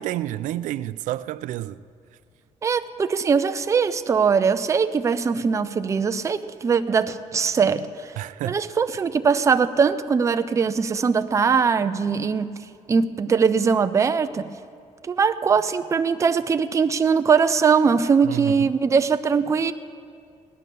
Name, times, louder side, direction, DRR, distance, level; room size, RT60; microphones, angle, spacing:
voice 1, 0.0-1.8 8.2-8.6 18.2-18.7, right 14 dB, 90° right, 0.4 m, -29 dB
voice 2, 2.6-8.1 8.5-12.5 12.9-14.5 15.1-19.7, right 5 dB, 25° right, 0.5 m, -21 dB
17.5 x 11.0 x 6.8 m
cardioid pair, 155°, 13 cm